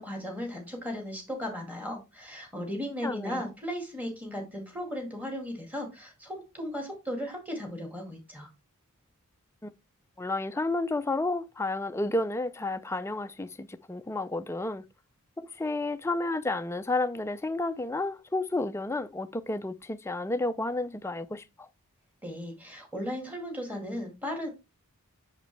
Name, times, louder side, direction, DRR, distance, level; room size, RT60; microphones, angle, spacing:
voice 1, 0.0-8.5 22.2-24.5, equal, 5° right, 2.1 m, -36 dB
voice 2, 3.0-3.4 9.6-9.7 10.2-14.9 15.4-21.7, left 2 dB, 10° left, 0.4 m, -31 dB
6.7 x 5.1 x 3.3 m
head